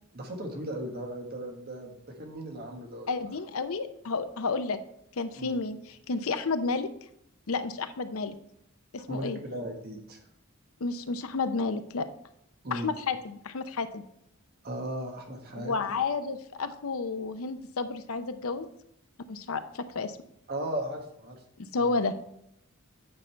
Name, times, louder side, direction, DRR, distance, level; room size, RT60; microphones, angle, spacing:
voice 1, 0.1-3.1 5.4-5.5 9.1-10.2 12.6-12.9 14.6-16.0 20.5-21.4 21.7-21.9, right 1 dB, 50° right, 3 dB, 1.4 m, -37 dB
voice 2, 3.1-4.8 5.1-6.9 7.5-8.4 8.9-9.4 10.8-12.1 12.7-14.0 15.6-18.7 19.3-20.2 21.6-22.1, left 4 dB, 80° left, 10 dB, 0.6 m, -31 dB
9.0 x 5.3 x 4.4 m, 0.76 s
head